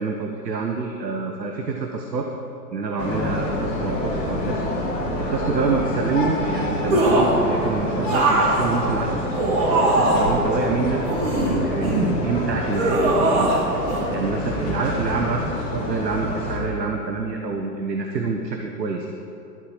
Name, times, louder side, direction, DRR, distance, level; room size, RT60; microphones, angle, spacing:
voice 1, 0.0-2.3 2.7-4.6 5.2-9.5 9.9-11.0 11.3-13.5 14.1-19.1, right 4 dB, 80° right, 2 dB, 1.2 m, -27 dB
sound 1, 3.0-16.6, left 1 dB, 30° left, 3.0 m, -27 dB
sound 2, 6.9-7.4 8.1-10.4 11.0-12.1 12.7-13.6 13.9-14.0, right 2 dB, 35° right, 2.5 m, -20 dB
12.5 x 4.8 x 8.7 m, 2.6 s
hypercardioid pair, 130°, 49 cm